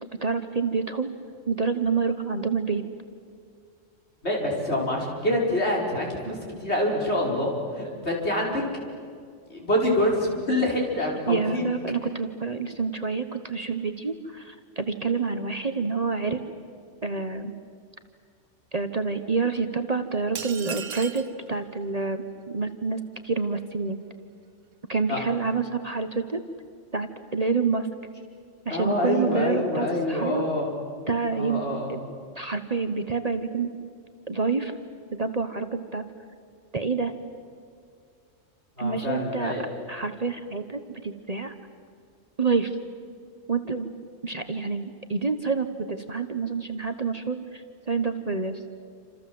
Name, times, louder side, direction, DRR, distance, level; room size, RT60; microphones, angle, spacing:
voice 1, 0.2-1.1 1.5-2.8 11.3-16.4 17.0-17.5 18.7-24.0 24.9-26.4 26.9-27.9 28.6-30.4 31.1-31.6 31.9-32.0 32.4-33.7 34.3-34.7 35.1-36.0 36.7-37.1 38.8-39.5 39.9-41.5 42.4-42.7 43.5-43.9 44.2-48.6, right 4 dB, 35° right, 8 dB, 1.2 m, -28 dB
voice 2, 4.2-8.6 9.5-11.7 25.1-25.2 28.7-30.7 31.3-31.9 38.8-39.6, left 1 dB, 60° left, -2 dB, 5.4 m, -26 dB
sound 1, 20.4-21.3, right 7 dB, 80° right, 1.4 m, -36 dB
28.5 x 27.0 x 7.8 m, 2.2 s
omnidirectional pair, 1.3 m